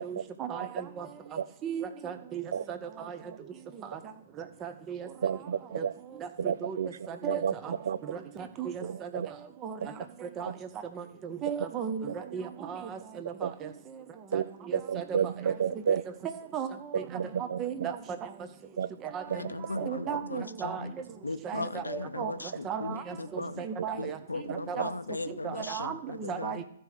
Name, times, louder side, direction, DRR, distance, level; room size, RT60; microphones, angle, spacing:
voice 1, 0.0-1.1 1.6-2.4 2.7-2.8 3.1-3.2 4.6-5.1 5.7-5.8 6.6-6.8 7.1-7.7 8.1-8.2 8.6-9.2 9.6-9.9 10.2-10.5 11.0-12.1 12.3-13.7 14.3-14.4 14.7-15.2 15.5-15.6 15.9-16.0 16.2-16.7 16.9-17.0 17.6-18.0 19.1-19.2 19.8-20.8 21.4-22.3 22.6-23.1 23.6-24.2 24.7-24.9 25.4-26.6, right 7 dB, 25° right, 8 dB, 0.8 m, -36 dB
voice 2, 5.2-5.9 6.4-8.0 8.8-9.3 9.8-9.9 10.5-10.6 12.1-12.2 13.4-13.5 14.3-14.4 14.7-16.0 16.9-17.9 18.8-18.9 19.8-20.2 23.4-23.5 24.5-24.6, right 8 dB, 60° right, 17 dB, 0.4 m, -31 dB
voice 3, 19.3-20.9 21.2-23.6 23.9-26.6, left 2 dB, 90° left, 13 dB, 0.6 m, -37 dB
13.5 x 4.6 x 6.1 m, 0.69 s
figure-of-eight pair, 125°, 0 cm